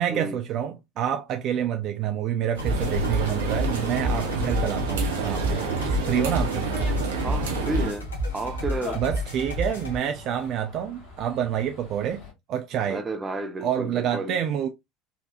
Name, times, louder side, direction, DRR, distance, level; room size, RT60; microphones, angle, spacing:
voice 1, 0.0-6.7 8.9-13.0 13.6-14.7, right 9 dB, 50° right, 0.4 m, -28 dB
sound 1, 2.6-10.0, equal, 85° left, 1.4 m, -30 dB
sound 2, 2.6-7.9, right 3 dB, 75° right, 0.9 m, -29 dB
Dog, 3.7-12.3, left 3 dB, 55° left, 1.7 m, -43 dB
voice 2, 7.2-9.0 12.9-14.4, right 2 dB, 20° right, 1.0 m, -32 dB
4.1 x 2.7 x 2.4 m
hypercardioid pair, 70°, 0 cm